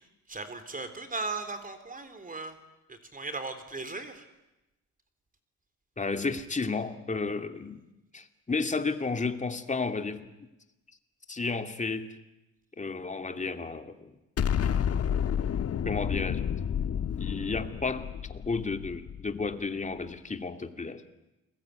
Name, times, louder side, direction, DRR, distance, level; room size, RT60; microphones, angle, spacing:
voice 1, 0.3-2.6 2.9-4.2, right 3 dB, 25° right, 9 dB, 3.7 m, -37 dB
voice 2, 6.0-7.8 8.1-10.3 11.3-12.1 12.8-14.2 15.8-16.4 17.1-21.0, left 4 dB, 25° left, 7 dB, 2.6 m, -32 dB
Explosion, 14.4-19.5, left 8 dB, 55° left, 1.4 m, -30 dB
29.0 x 22.0 x 9.4 m, 0.96 s
cardioid pair, 90°, 30 cm